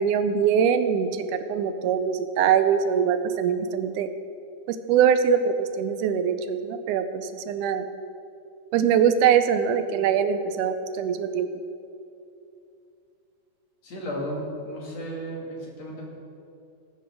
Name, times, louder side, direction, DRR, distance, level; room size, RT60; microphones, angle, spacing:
voice 1, 0.0-4.1 4.7-7.9 8.7-11.5, right 7 dB, 90° right, 10 dB, 2.1 m, -23 dB
voice 2, 13.8-16.1, equal, 60° left, -2 dB, 3.3 m, -34 dB
19.5 x 10.0 x 3.6 m, 2.6 s
omnidirectional pair, 3.6 m